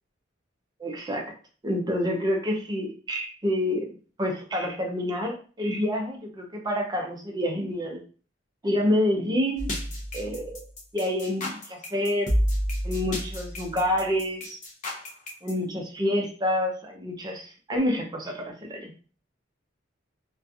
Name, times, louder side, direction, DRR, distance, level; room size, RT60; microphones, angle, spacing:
voice 1, 0.8-1.3 1.6-3.9 4.2-8.0 8.6-9.7 10.1-10.6 10.9-12.3 12.8-14.6 15.4-18.9, left 1 dB, 20° right, 1 dB, 0.5 m, -28 dB
sound 1, 9.6-15.5, equal, 40° left, 0.7 m, -30 dB
2.4 x 2.3 x 2.6 m, 0.38 s
head